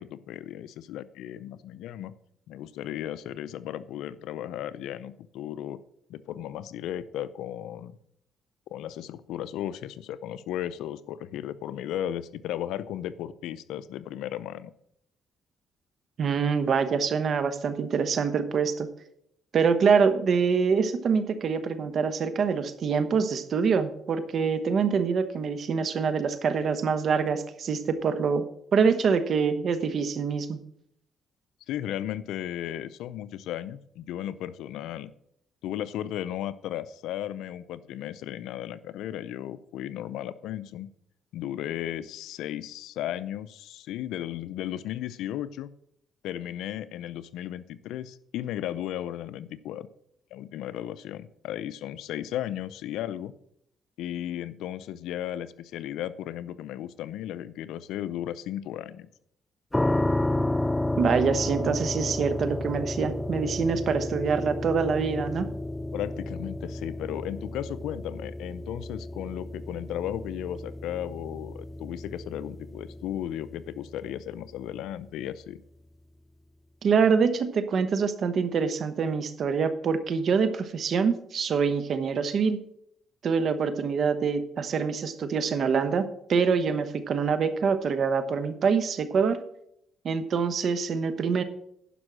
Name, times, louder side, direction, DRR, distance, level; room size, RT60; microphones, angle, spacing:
voice 1, 0.0-2.1 2.5-5.8 6.1-8.0 8.7-14.7 31.7-35.1 35.6-40.9 41.3-45.7 46.2-49.9 50.3-53.3 54.0-59.1 65.9-75.6, left 11 dB, 90° left, 16 dB, 0.5 m, -35 dB
voice 2, 16.2-18.9 19.5-28.4 28.7-30.6 61.0-65.5 76.8-82.6 83.2-89.4 90.0-91.4, right 5 dB, 55° right, 11 dB, 1.0 m, -25 dB
sound 1, 59.7-74.6, left 1 dB, 10° left, 0.3 m, -32 dB
11.0 x 5.4 x 6.2 m, 0.73 s
cardioid pair, 90°, 0 cm